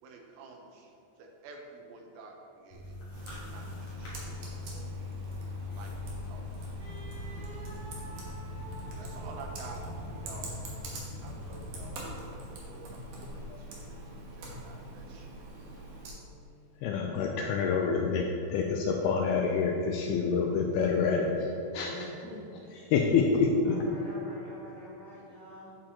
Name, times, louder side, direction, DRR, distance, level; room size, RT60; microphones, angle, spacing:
voice 1, 0.0-3.0 3.3-5.1 5.7-6.4 8.9-9.8 10.1-10.5 10.8-13.8 14.4-15.5, right 4 dB, 85° right, 1 dB, 3.2 m, -50 dB
sound 1, 2.7-11.9, left 2 dB, 45° left, 2.4 m, -41 dB
Computer keyboard, 3.1-16.1, right 1 dB, 60° right, 2.3 m, -44 dB
Wind instrument woodwind instrument, 6.8-10.9, right 2 dB, 40° right, 2.0 m, -50 dB
voice 2, 16.8-18.2 18.5-21.9 22.9-23.7, left 5 dB, 85° left, 1 dB, 2.3 m, -27 dB
voice 3, 21.8-22.9 23.6-25.7, equal, 65° left, -10 dB, 1.3 m, -46 dB
8.9 x 8.7 x 3.0 m, 2.9 s
omnidirectional pair, 5.0 m